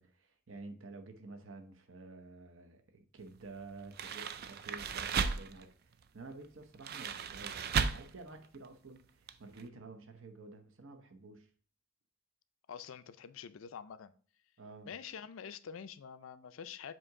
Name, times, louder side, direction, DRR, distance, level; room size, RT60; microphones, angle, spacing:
voice 1, 0.0-5.7 6.1-11.5 14.6-14.9, right 3 dB, 70° right, 0.9 m, -51 dB
sound 1, 3.9-5.6 6.7-8.2 8.4-8.7 9.3-9.4 9.6-9.7, right 6 dB, 50° right, 0.4 m, -35 dB
voice 2, 12.7-14.1 14.9-16.9, left 7 dB, 70° left, 0.4 m, -46 dB
7.4 x 2.8 x 4.7 m
head